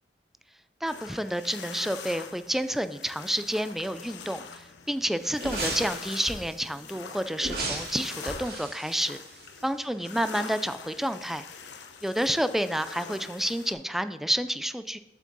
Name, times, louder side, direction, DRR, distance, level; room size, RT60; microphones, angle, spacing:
voice 1, 0.8-9.2 9.6-11.4 12.0-15.0, equal, ahead, 12 dB, 0.3 m, -29 dB
sound 1, 0.9-13.7, left 6 dB, 85° left, 0.9 m, -43 dB
sound 2, 5.4-6.5 7.4-9.8 10.2-10.3, right 2 dB, 60° right, 2.1 m, -35 dB
8.0 x 7.4 x 4.0 m, 1.1 s
head